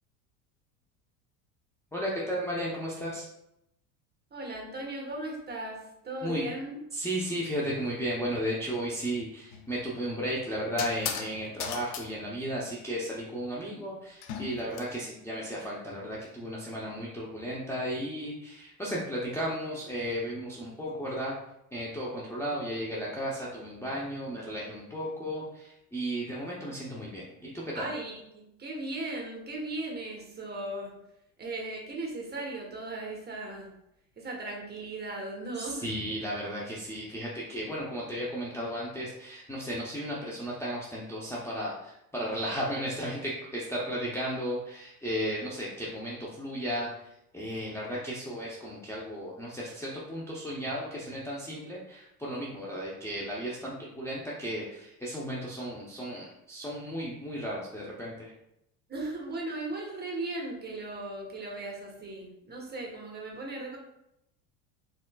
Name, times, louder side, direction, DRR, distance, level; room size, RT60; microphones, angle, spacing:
voice 1, 1.9-3.3 6.2-6.5 6.9-21.3 21.7-27.9 35.5-46.9 47.3-58.3, equal, 5° left, -6 dB, 0.7 m, -34 dB
voice 2, 4.3-6.8 27.7-30.9 31.4-33.7 34.2-35.9 58.9-63.8, right 2 dB, 20° right, -1 dB, 1.2 m, -37 dB
sound 1, 9.5-9.7 10.8-11.3 11.6-12.1 14.2-14.8, left 7 dB, 60° left, 0.7 m, -36 dB
4.2 x 3.7 x 2.3 m, 0.81 s
hypercardioid pair, 85°, 44 cm